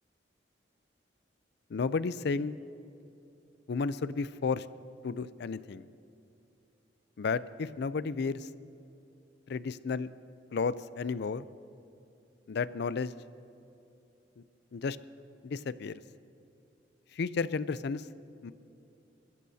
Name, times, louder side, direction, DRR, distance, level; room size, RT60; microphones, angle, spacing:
voice 1, 1.7-2.6 3.7-4.7 5.0-5.9 7.2-8.5 9.5-10.1 10.5-11.5 12.5-13.1 14.7-15.0 15.4-16.0 17.2-18.0 18.4-18.5, left 4 dB, 65° left, 16 dB, 0.4 m, -32 dB
29.5 x 14.0 x 2.8 m, 2.8 s
head